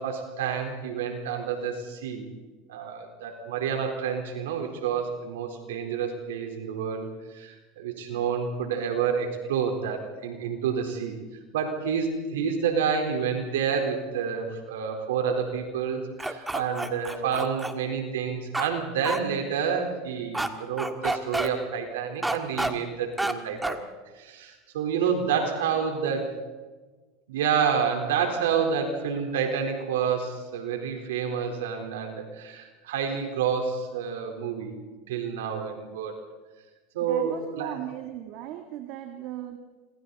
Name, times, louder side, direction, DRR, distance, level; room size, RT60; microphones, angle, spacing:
voice 1, 0.0-2.3 2.7-11.1 11.5-23.8 24.1-26.3 27.3-34.8 35.1-36.2 36.9-37.8, right 7 dB, 90° right, 4 dB, 4.2 m, -29 dB
sound 1, 16.2-17.7 18.5-18.7 19.0-19.2 20.3-20.5 20.8-21.5 22.2-22.7 23.2-23.3 23.6-23.8, right 2 dB, 10° right, 1.8 m, -28 dB
voice 2, 25.4-25.9 37.0-39.6, right 13 dB, 60° right, 6 dB, 1.9 m, -38 dB
27.0 x 26.5 x 4.2 m, 1.3 s
supercardioid pair, 110°, 0 cm